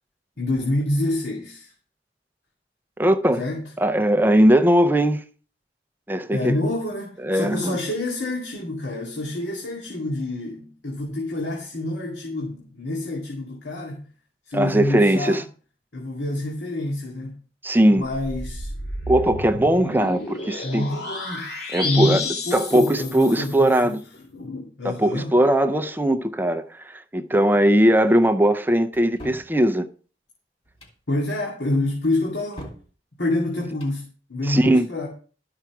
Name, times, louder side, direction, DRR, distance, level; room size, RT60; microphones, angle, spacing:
voice 1, 0.4-1.7 3.4-3.7 6.3-14.0 14.5-15.4 15.9-17.4 17.9-18.7 20.6-21.5 21.8-24.0 24.3-25.3 31.1-32.7 33.2-34.0 34.3-35.1, left 1 dB, 90° left, 2.3 m, -27 dB
voice 2, 3.0-3.4 3.8-5.2 6.1-6.5 7.2-7.8 14.5-15.4 17.6-18.1 19.1-20.8 21.7-22.2 22.5-24.0 24.8-29.9 34.5-34.9, right 1 dB, 10° right, 0.5 m, -19 dB
sound 1, 18.0-23.8, left 2 dB, 70° left, 2.4 m, -32 dB
sound 2, 28.9-29.5 30.7-31.0 32.0-32.9 33.6-34.0, equal, 35° left, 2.8 m, -41 dB
12.5 x 5.8 x 6.0 m
head